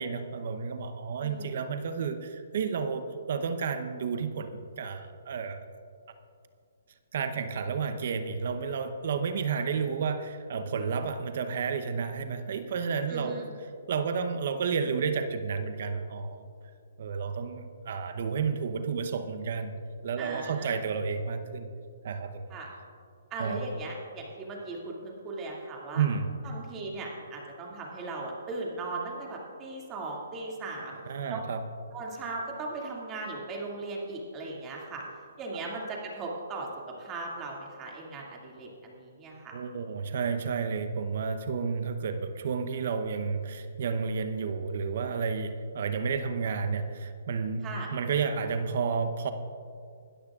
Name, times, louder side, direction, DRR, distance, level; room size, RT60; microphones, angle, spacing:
voice 1, 0.0-4.5 4.8-5.6 7.1-16.5 17.0-19.8 20.0-21.7 22.0-22.5 23.4-23.6 25.9-26.3 31.1-31.6 39.5-49.3, right 5 dB, 55° right, 8 dB, 0.9 m, -31 dB
voice 2, 1.2-1.7 13.1-13.5 20.2-20.8 22.5-22.7 23.3-26.0 26.4-31.0 31.3-31.4 31.9-35.0 35.4-36.7 37.0-39.5 47.6-47.9, right 3 dB, 20° right, -2 dB, 2.4 m, -38 dB
20.5 x 13.0 x 2.5 m, 2.3 s
hypercardioid pair, 150°, 0 cm